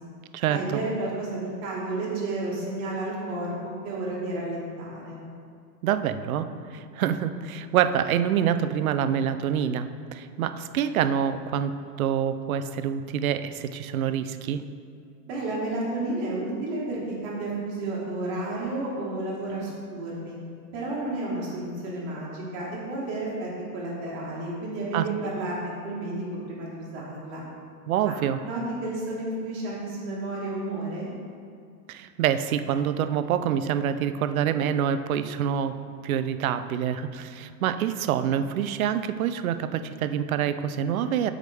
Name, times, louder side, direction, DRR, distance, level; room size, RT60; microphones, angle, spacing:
voice 1, 0.5-5.2 15.3-20.4 20.7-27.4 28.0-28.1 28.4-31.1, right 2 dB, 20° right, -5 dB, 1.5 m, -31 dB
voice 2, 5.8-14.6 24.9-25.1 27.9-28.4 31.9-35.8 36.0-41.3, right 9 dB, 60° right, 11 dB, 0.5 m, -26 dB
13.0 x 5.0 x 3.4 m, 2.3 s
supercardioid pair, 170°, 49 cm